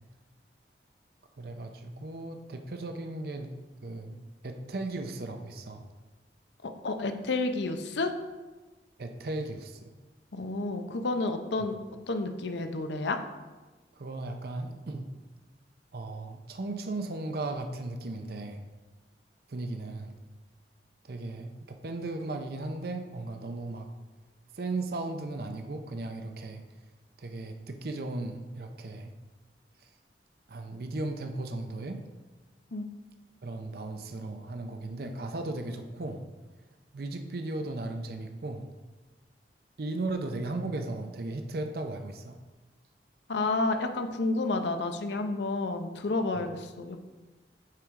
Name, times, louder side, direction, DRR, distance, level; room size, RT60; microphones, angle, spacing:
voice 1, 1.4-3.5 3.8-5.9 9.0-9.9 13.9-15.1 15.9-18.6 19.5-20.2 21.0-23.9 24.5-26.6 27.2-29.1 29.8-29.9 30.5-32.0 33.4-36.2 36.9-38.7 39.8-42.4 46.3-46.5, right 2 dB, 60° right, 6 dB, 0.6 m, -36 dB
voice 2, 6.8-8.1 10.3-11.8 12.1-13.2 32.7-32.9 43.3-47.0, left 3 dB, 85° left, 7 dB, 0.7 m, -30 dB
9.2 x 4.6 x 3.6 m, 1.2 s
head